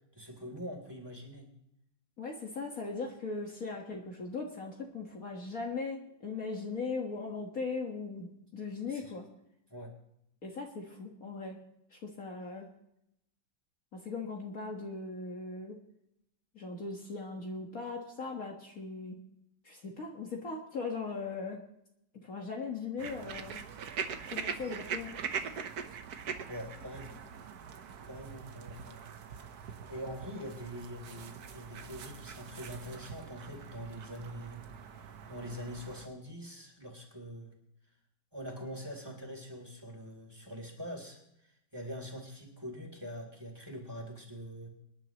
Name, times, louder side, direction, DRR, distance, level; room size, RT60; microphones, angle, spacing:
voice 1, 0.1-1.5 8.9-9.1 9.7-9.9 26.5-27.2 28.0-29.1 29.9-34.6 35.0-37.5 38.3-44.7, equal, 10° right, 0 dB, 3.1 m, -44 dB
voice 2, 2.2-9.3 10.4-11.6 11.9-12.7 13.9-15.8 16.6-19.2 19.6-21.6 22.1-23.6 24.3-25.1, left 4 dB, 50° left, 0 dB, 1.9 m, -39 dB
sound 1, 23.0-36.1, right 6 dB, 60° right, 1.4 m, -42 dB
26.0 x 10.5 x 3.0 m, 0.79 s
omnidirectional pair, 2.0 m